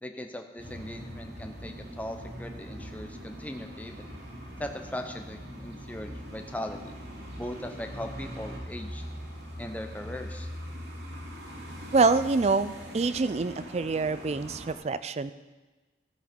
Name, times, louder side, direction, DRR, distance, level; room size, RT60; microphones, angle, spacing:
voice 1, 0.0-4.0 4.6-6.9 7.4-9.0 9.6-10.5, left 1 dB, 10° left, 5 dB, 0.7 m, -39 dB
sound 1, 0.6-14.8, equal, 75° right, 2.5 m, -42 dB
voice 2, 11.9-15.3, right 4 dB, 35° right, 14 dB, 0.4 m, -26 dB
15.0 x 6.4 x 5.2 m, 1.2 s
head